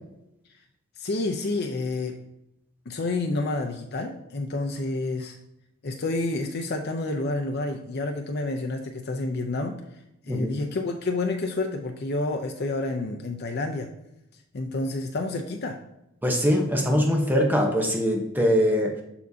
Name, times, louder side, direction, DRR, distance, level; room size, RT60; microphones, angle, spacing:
voice 1, 1.0-2.2 2.9-5.4 5.8-9.7 10.2-13.9 14.5-15.8, left 2 dB, 50° left, 3 dB, 0.6 m, -29 dB
voice 2, 16.2-19.0, equal, 10° right, 1 dB, 0.8 m, -22 dB
7.0 x 6.2 x 2.7 m, 0.85 s
head